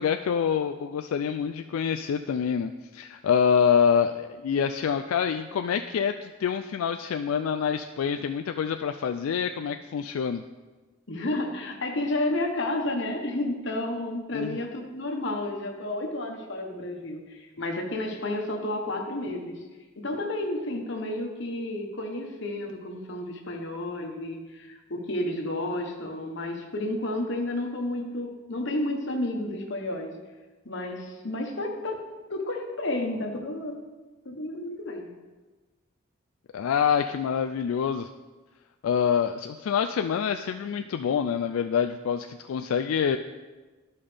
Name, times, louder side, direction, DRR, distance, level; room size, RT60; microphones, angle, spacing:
voice 1, 0.0-10.4 14.3-14.6 36.5-38.1 38.8-43.2, left 7 dB, 85° left, 6 dB, 0.3 m, -26 dB
voice 2, 11.1-19.6 20.0-30.2 30.6-32.0 32.3-33.8 34.2-35.1, left 1 dB, 60° left, 2 dB, 1.1 m, -31 dB
12.0 x 5.6 x 3.4 m, 1.2 s
head